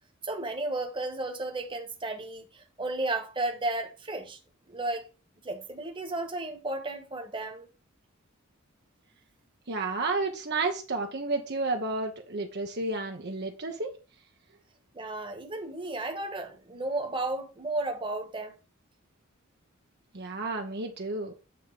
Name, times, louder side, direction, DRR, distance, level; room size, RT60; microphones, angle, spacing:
voice 1, 0.2-4.4 4.7-5.0 5.4-7.7 14.9-18.6, right 2 dB, 25° right, 1.4 m, -33 dB
voice 2, 9.7-13.9 20.1-21.3, right 3 dB, 50° right, 0.9 m, -31 dB
8.5 x 3.6 x 5.8 m
head